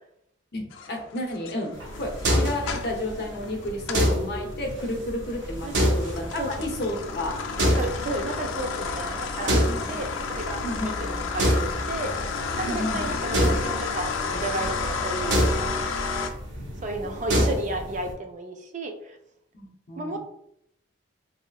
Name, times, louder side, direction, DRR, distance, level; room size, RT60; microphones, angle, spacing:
voice 1, 0.5-1.7 2.0-7.3 9.4-9.9 10.6-10.9 12.6-13.5 17.3-17.4 19.5-20.2, left 1 dB, 55° left, 0 dB, 0.7 m, -32 dB
sound 1, 0.7-4.1 4.5-16.3, left 4 dB, 80° left, 0.4 m, -32 dB
sound 2, 1.7-18.1, equal, 60° right, 0.7 m, -28 dB
voice 2, 5.6-6.0 6.4-6.7 7.8-12.2 12.6-16.0 16.8-19.2 20.0-20.2, right 1 dB, 40° right, 4 dB, 0.3 m, -33 dB
3.1 x 2.8 x 2.3 m, 0.74 s
head